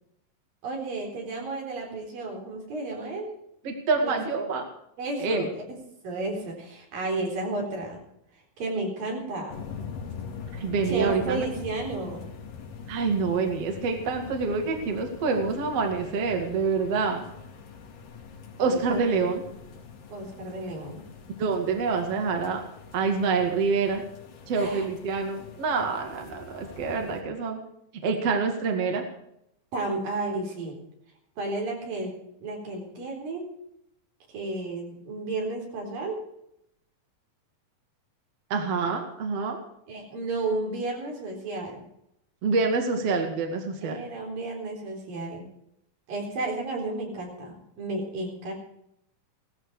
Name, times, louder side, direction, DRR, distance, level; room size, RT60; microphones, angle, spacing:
voice 1, 0.6-3.3 4.0-4.2 5.0-5.5 6.0-8.0 8.6-9.6 10.9-12.3 18.7-19.3 20.1-21.0 24.5-24.9 29.7-30.8 31.4-33.5 34.3-36.2 39.9-41.8 43.8-45.4 46.1-48.5, right 2 dB, 80° right, 0 dB, 5.7 m, -32 dB
voice 2, 3.6-4.6 5.2-5.5 10.6-11.4 12.9-17.2 18.6-19.4 21.4-22.6 22.9-24.0 24.5-27.6 28.0-29.0 38.5-39.6 42.4-44.0, right 4 dB, 50° right, 3 dB, 2.9 m, -26 dB
sound 1, 9.5-27.2, left 6 dB, 80° left, 3.9 m, -43 dB
17.5 x 14.0 x 4.9 m, 0.77 s
omnidirectional pair, 4.0 m